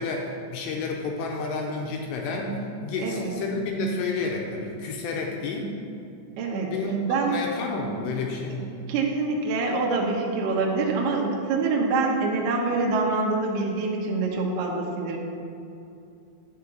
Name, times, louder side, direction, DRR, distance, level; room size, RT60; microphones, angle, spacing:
voice 1, 0.0-2.5 2.8-5.7 6.7-7.0 7.3-8.6, left 3 dB, 80° left, 0 dB, 2.7 m, -30 dB
voice 2, 3.0-3.3 6.4-6.7 7.1-7.3 8.9-15.2, right 3 dB, 75° right, -1 dB, 2.4 m, -25 dB
9.6 x 4.4 x 7.6 m, 2.6 s
omnidirectional pair, 5.6 m